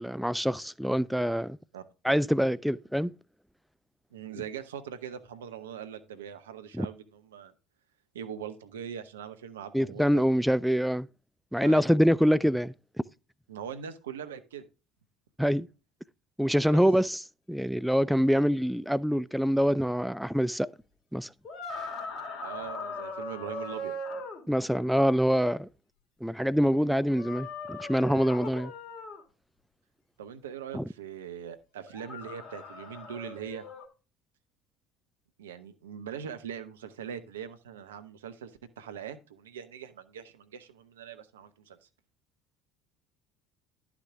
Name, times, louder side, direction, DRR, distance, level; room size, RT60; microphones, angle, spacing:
voice 1, 0.0-1.6 2.0-3.1 6.7-6.9 9.7-11.1 11.5-12.7 15.4-15.7 16.4-17.2 17.5-20.7 21.1-21.3 24.5-25.7 26.2-28.7 30.7-30.8, equal, ahead, 0.4 m, -25 dB
voice 2, 4.1-7.5 8.1-10.2 11.6-11.8 13.5-14.7 16.7-16.8 22.4-24.0 28.5-28.6 30.2-33.7 35.4-41.8, right 8 dB, 75° right, 0.8 m, -41 dB
sound 1, 21.5-24.4 27.1-29.2 31.8-33.9, left 2 dB, 40° left, 2.8 m, -39 dB
11.5 x 6.0 x 3.5 m
figure-of-eight pair, 65°, 0 cm